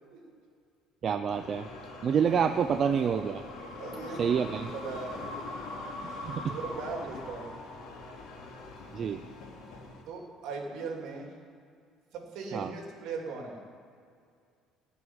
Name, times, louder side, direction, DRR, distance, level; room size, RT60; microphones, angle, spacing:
voice 1, 1.0-1.7 2.0-3.4 4.2-4.7 6.2-6.5 8.9-9.2 12.5-12.7, right 7 dB, 35° right, 8 dB, 0.5 m, -27 dB
sound 1, 1.3-10.0, left 2 dB, 70° left, 2.9 m, -42 dB
voice 2, 3.6-5.6 6.1-7.6 10.1-11.3 12.1-13.6, right 4 dB, 60° right, 1 dB, 2.9 m, -39 dB
15.5 x 6.1 x 9.6 m, 2.3 s
cardioid pair, 155°, 0 cm